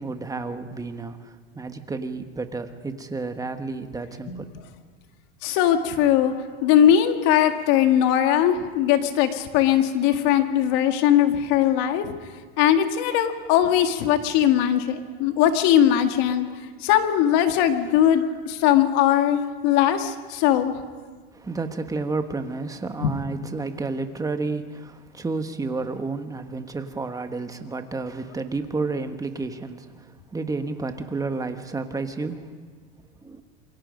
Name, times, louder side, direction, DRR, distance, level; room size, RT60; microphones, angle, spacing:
voice 1, 0.0-4.5 21.3-32.6 33.2-33.4, right 3 dB, 10° right, 7 dB, 1.4 m, -31 dB
voice 2, 5.4-6.3 6.6-16.5 16.8-20.8 23.0-23.1, left 10 dB, 60° left, 6 dB, 2.1 m, -20 dB
27.5 x 22.5 x 5.2 m, 1.5 s
supercardioid pair, 135°, 31 cm